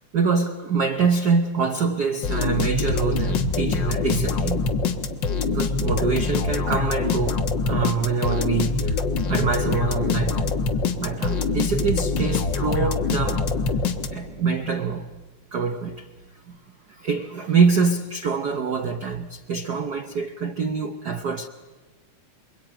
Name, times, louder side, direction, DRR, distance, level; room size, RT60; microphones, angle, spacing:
voice 1, 0.1-4.6 5.5-9.0 9.3-10.5 11.0-13.4 14.1-15.2 15.5-16.1 16.5-16.6 17.0-21.5, right 5 dB, 75° right, 0.9 m, -25 dB
sound 1, 2.2-14.4, left 4 dB, 50° left, 1.5 m, -24 dB
27.5 x 23.0 x 9.0 m
omnidirectional pair, 3.3 m